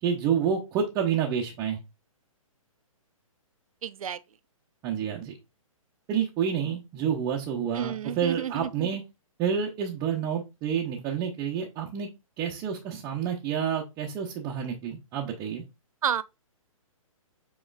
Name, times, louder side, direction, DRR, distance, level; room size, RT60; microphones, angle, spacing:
voice 1, 0.0-1.8 4.8-5.3 6.1-9.0 9.4-12.1 12.4-15.6, right 8 dB, 20° right, 0.6 m, -29 dB
voice 2, 3.8-4.2 7.7-8.9 16.0-16.2, right 9 dB, 75° right, 0.5 m, -31 dB
7.4 x 3.0 x 2.4 m
hypercardioid pair, 150°, 18 cm